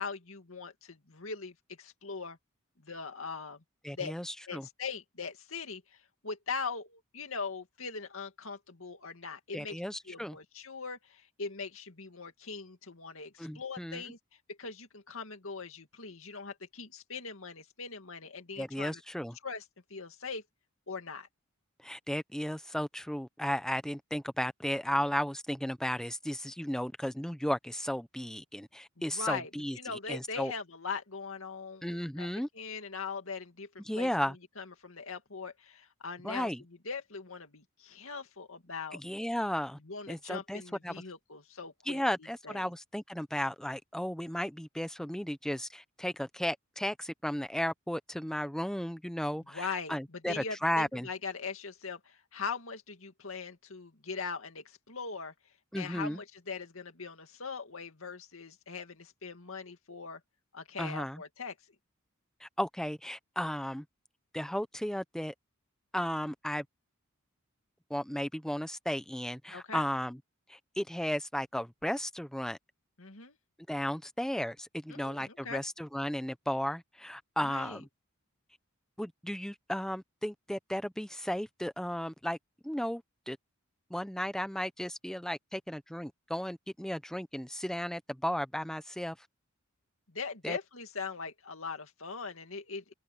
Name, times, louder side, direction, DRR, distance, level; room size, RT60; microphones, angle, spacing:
voice 1, 0.0-2.4 2.8-3.6 3.9-4.2 4.5-9.8 10.1-14.2 14.5-19.0 19.4-19.6 19.9-20.4 20.9-21.3 29.0-29.5 29.7-32.3 32.5-36.5 36.8-39.0 39.8-42.7 49.5-55.3 55.8-60.2 60.5-61.5 69.5-69.8 73.0-73.4 74.9-75.6 77.4-77.8 90.1-92.9, left 5 dB, 70° left, 2.4 m, -41 dB
voice 2, 3.8-4.7 9.5-10.4 13.4-14.0 18.6-19.3 21.8-29.8 30.1-30.5 31.8-32.5 33.9-34.3 36.2-36.6 38.9-39.8 40.1-40.9 41.9-51.1 55.7-56.2 60.8-61.2 62.4-63.8 64.3-65.3 65.9-66.6 67.9-70.2 70.5-72.6 73.7-77.9 79.0-82.4 82.6-83.4 83.9-89.2 90.4-90.6, equal, 5° left, 0.7 m, -34 dB
open air
head